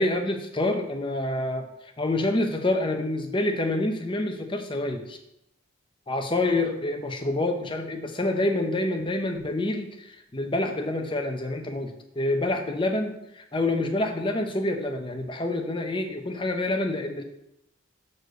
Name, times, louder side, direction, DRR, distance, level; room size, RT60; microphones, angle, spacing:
voice 1, 0.0-1.6 2.0-5.2 6.1-17.2, left 2 dB, 25° left, 4 dB, 0.8 m, -27 dB
6.5 x 4.4 x 6.5 m, 0.83 s
head